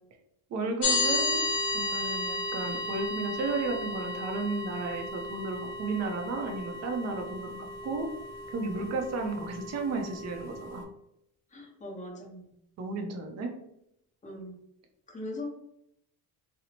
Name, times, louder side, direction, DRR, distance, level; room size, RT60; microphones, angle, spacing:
voice 1, 0.5-1.4 1.7-8.1 8.5-10.8 12.8-13.5, right 3 dB, 45° right, 3 dB, 0.5 m, -33 dB
sound 1, 0.8-10.8, left 2 dB, 75° left, 0.8 m, -34 dB
voice 2, 11.5-12.5 14.2-14.5 15.1-15.4, left 1 dB, 20° left, -1 dB, 0.8 m, -40 dB
2.8 x 2.0 x 2.7 m, 0.78 s
cardioid pair, 135°, 38 cm